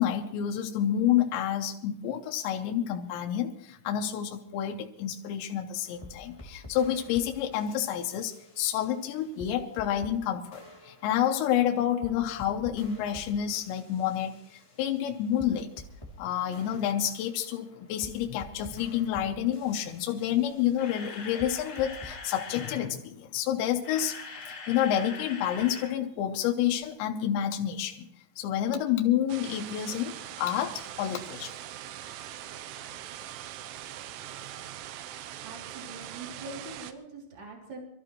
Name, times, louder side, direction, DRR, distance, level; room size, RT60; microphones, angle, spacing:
voice 1, 0.0-15.7 16.2-28.1 28.4-31.5, left 10 dB, 75° left, 2 dB, 3.0 m, -29 dB
sound 1, 5.7-10.2 10.5-16.2 16.5-22.2 22.5-22.7, left 1 dB, 15° left, 1.1 m, -49 dB
Camera, 20.7-22.9 23.6-25.9 26.2-26.3 26.8-26.9, left 4 dB, 50° left, 1.6 m, -42 dB
sound 2, 29.3-36.9, right 11 dB, 85° right, 3.3 m, -42 dB
voice 2, 35.4-37.8, right 2 dB, 30° right, -1 dB, 3.0 m, -43 dB
25.0 x 14.0 x 3.1 m, 0.71 s
omnidirectional pair, 5.6 m